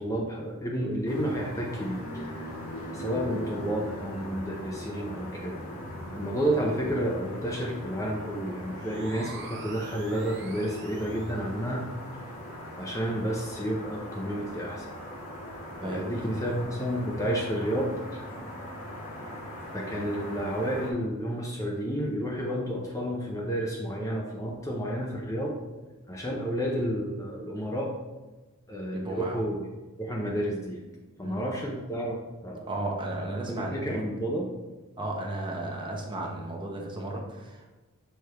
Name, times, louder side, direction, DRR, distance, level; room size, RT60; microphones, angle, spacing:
voice 1, 0.0-2.0 2.9-5.6 6.1-11.8 12.8-14.9 15.8-18.2 19.7-25.5 26.1-27.9 28.7-29.6 30.0-30.8 31.2-32.2 32.4-32.7 33.5-34.6, equal, 15° left, -1 dB, 0.6 m, -31 dB
sound 1, 1.1-20.9, equal, 85° left, 1.7 m, -40 dB
sound 2, 8.7-11.4, right 5 dB, 50° right, 0.6 m, -45 dB
voice 2, 15.8-16.4 28.9-29.4 31.2-31.6 32.7-34.0 35.0-37.7, right 2 dB, 20° right, 0 dB, 0.9 m, -34 dB
6.6 x 3.3 x 4.5 m, 1.2 s
head